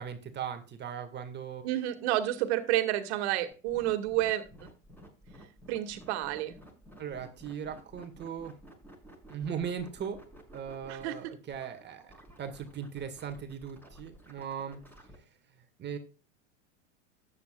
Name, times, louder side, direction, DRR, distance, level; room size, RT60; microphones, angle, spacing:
voice 1, 0.0-1.6 7.0-8.6 9.3-10.2 10.5-12.0 12.4-14.8 15.8-16.0, right 7 dB, 30° right, 1.9 m, -38 dB
voice 2, 1.6-4.4 5.7-6.5 10.9-11.3, right 14 dB, 60° right, 2.2 m, -30 dB
sound 1, 3.5-15.2, equal, 5° left, 6.1 m, -53 dB
14.0 x 9.8 x 2.4 m
hypercardioid pair, 95°, 37 cm